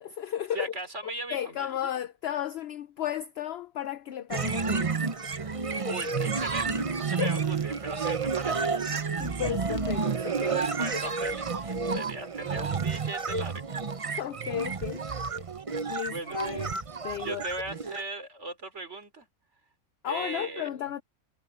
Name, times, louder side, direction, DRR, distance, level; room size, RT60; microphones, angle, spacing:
voice 1, 0.0-0.7 1.0-5.0 7.2-7.4 9.2-10.6 11.9-12.0 14.1-15.0 15.9-17.4 20.0-21.0, left 10 dB, 65° left, 0.7 m, -34 dB
voice 2, 0.5-1.9 5.8-9.1 10.5-13.8 15.7-15.8 16.1-16.4 17.2-19.3 20.0-20.9, right 2 dB, 50° right, 3.5 m, -39 dB
sound 1, 4.3-18.0, right 5 dB, 30° right, 0.6 m, -30 dB
omnidirectional pair, 1.5 m